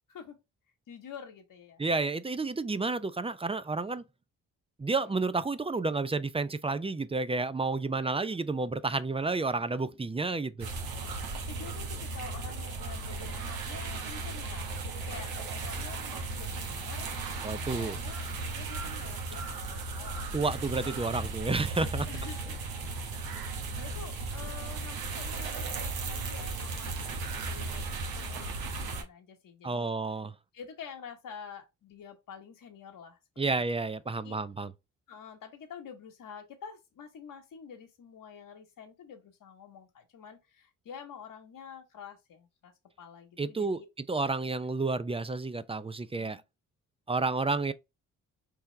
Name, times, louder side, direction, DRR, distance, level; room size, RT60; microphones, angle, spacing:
voice 1, 0.1-0.4 0.9-1.8 4.9-5.2 7.9-8.4 10.9-15.3 15.6-17.1 17.7-20.7 22.1-22.7 23.3-29.9 30.5-33.2 33.5-33.7 34.2-34.4 35.1-42.7 43.0-43.9 46.1-46.4, left 7 dB, 60° left, 1.1 m, -48 dB
voice 2, 1.8-4.0 4.8-10.7 17.4-18.0 20.3-22.1 29.6-30.3 33.4-34.7 43.4-43.8 44.1-46.4 47.1-47.7, right 3 dB, 15° right, 0.5 m, -30 dB
sound 1, 10.6-29.0, right 3 dB, 75° right, 1.2 m, -36 dB
4.5 x 3.4 x 3.2 m
supercardioid pair, 50°, 36 cm